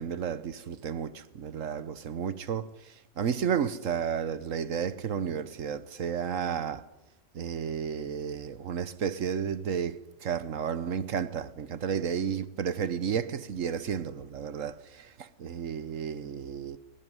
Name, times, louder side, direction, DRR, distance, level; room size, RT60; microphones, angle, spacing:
voice 1, 0.0-6.9 7.3-16.8, right 7 dB, 70° right, 1.4 m, -32 dB
22.0 x 20.0 x 9.7 m
omnidirectional pair, 1.4 m